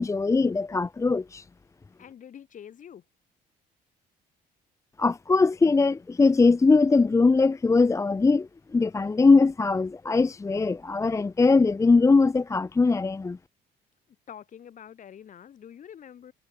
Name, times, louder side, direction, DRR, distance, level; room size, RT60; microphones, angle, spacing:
voice 1, 0.0-1.4 5.0-13.4, left 3 dB, 15° left, 0.8 m, -21 dB
voice 2, 2.0-3.0 14.3-16.3, left 9 dB, 50° left, 6.7 m, -46 dB
cardioid pair, 110°, 17 cm